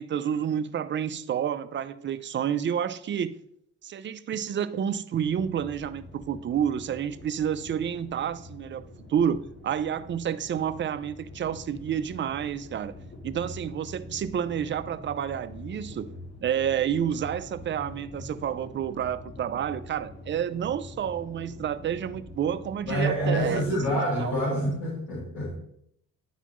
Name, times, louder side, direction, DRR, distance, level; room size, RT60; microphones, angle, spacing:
voice 1, 0.0-3.3 3.8-12.9 13.2-16.1 16.4-24.4, right 9 dB, 40° right, 0.5 m, -29 dB
sound 1, 5.2-23.9, left 2 dB, 40° left, 1.7 m, -45 dB
voice 2, 22.9-25.5, equal, 90° left, 2.9 m, -27 dB
10.0 x 4.1 x 3.0 m
cardioid pair, 90°, 30 cm